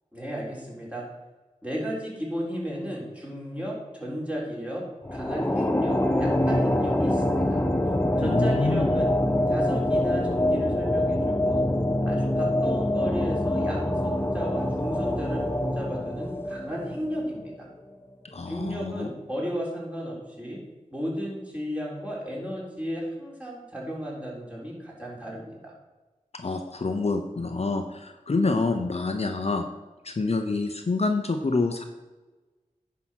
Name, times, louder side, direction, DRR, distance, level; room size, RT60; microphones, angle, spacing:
voice 1, 0.1-1.0 1.6-4.8 5.1-7.6 8.2-9.1 9.5-11.7 12.1-15.4 15.8-17.7 18.5-20.6 20.9-25.7, equal, 10° right, -4 dB, 3.9 m, -34 dB
sound 1, 5.0-17.6, left 1 dB, 15° left, 0.8 m, -25 dB
voice 2, 8.2-9.1 18.3-19.1 26.3-29.6 30.0-31.8, left 3 dB, 50° left, 5 dB, 0.8 m, -27 dB
9.8 x 5.8 x 6.3 m, 1.2 s
wide cardioid pair, 60°, 14 cm